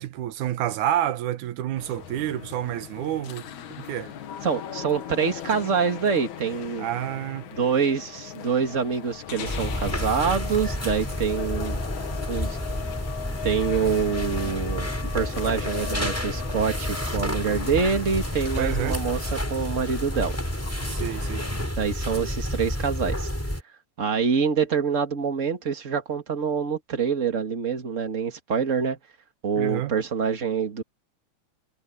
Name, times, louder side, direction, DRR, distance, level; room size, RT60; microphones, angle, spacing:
voice 1, 0.0-3.5 3.8-4.1 6.8-7.5 18.6-19.0 20.9-21.5 29.6-29.9, right 12 dB, 90° right, 2.5 m, -29 dB
sound 1, 1.8-21.7, left 9 dB, 75° left, 3.0 m, -38 dB
voice 2, 4.4-6.9 7.5-11.8 12.3-12.6 13.4-14.9 15.1-20.4 21.8-23.3 24.0-29.0 29.4-30.8, right 6 dB, 30° right, 2.1 m, -26 dB
sound 2, 9.4-23.6, equal, 5° left, 6.0 m, -30 dB
omnidirectional pair, 3.4 m